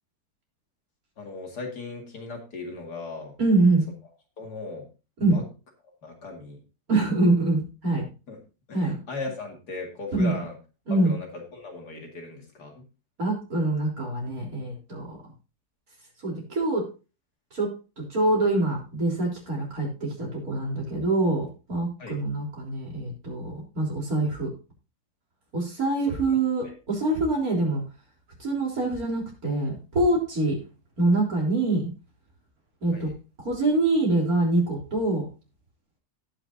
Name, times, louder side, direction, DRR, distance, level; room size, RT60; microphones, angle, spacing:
voice 1, 1.2-3.3 4.4-4.8 5.3-5.5 6.0-6.6 8.3-8.4 8.7-10.5 11.0-12.8 22.0-22.2 26.3-26.4 26.6-26.7 32.9-33.1, left 3 dB, 80° left, 2 dB, 2.8 m, -37 dB
voice 2, 3.4-3.9 5.2-5.3 6.9-8.1 8.7-9.0 10.1-10.3 10.9-11.1 13.2-15.2 16.2-16.8 17.5-17.7 18.0-24.5 25.5-27.8 28.4-30.6 31.0-31.8 32.8-33.1 33.4-35.2, right 2 dB, 65° right, -2 dB, 4.1 m, -25 dB
17.5 x 6.1 x 2.7 m, 0.32 s
omnidirectional pair, 1.7 m